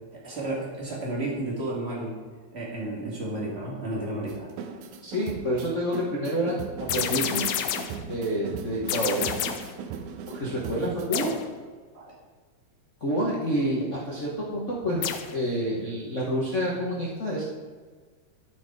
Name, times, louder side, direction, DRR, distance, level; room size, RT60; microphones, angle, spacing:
voice 1, 0.1-2.2 2.5-4.5 11.9-12.1, right 1 dB, 25° right, -4 dB, 2.1 m, -32 dB
sound 1, 4.3-11.1, right 7 dB, 80° right, 2.0 m, -38 dB
voice 2, 5.0-7.4 8.1-9.3 10.3-11.4 13.0-17.4, equal, 60° left, -4 dB, 0.7 m, -28 dB
sound 2, 6.9-8.0 8.9-9.8 11.1-11.5 15.0-15.4, left 9 dB, 80° left, 1.8 m, -29 dB
12.0 x 4.6 x 4.7 m, 1.5 s
omnidirectional pair, 3.3 m